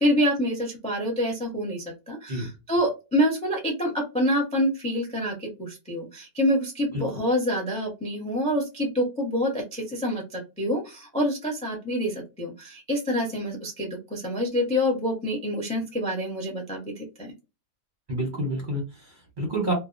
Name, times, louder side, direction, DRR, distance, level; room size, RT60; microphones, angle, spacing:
voice 1, 0.0-17.3, equal, 10° left, 0 dB, 0.4 m, -27 dB
voice 2, 18.1-19.7, right 1 dB, 40° right, -1 dB, 0.7 m, -29 dB
2.7 x 2.2 x 2.4 m, 0.26 s
omnidirectional pair, 1.8 m